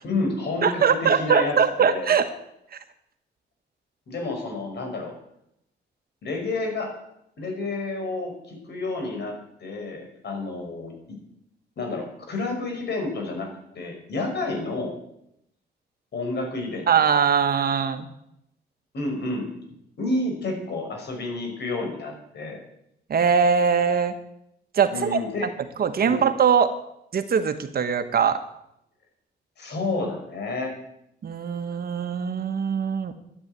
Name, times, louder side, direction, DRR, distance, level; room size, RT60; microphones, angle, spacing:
voice 1, 0.0-2.1 4.1-5.1 6.2-6.9 7.4-11.2 11.8-13.5 13.7-14.9 16.1-17.1 18.9-19.5 20.0-22.6 24.9-25.5 26.1-26.2 29.6-30.8, left 2 dB, 65° left, 3 dB, 5.6 m, -30 dB
voice 2, 0.6-2.3 16.9-18.1 23.1-24.1 24.7-25.2 25.8-26.7 27.1-28.4 31.2-33.1, right 6 dB, 55° right, 9 dB, 1.4 m, -21 dB
11.5 x 11.0 x 8.9 m, 0.78 s
cardioid pair, 120°, 19 cm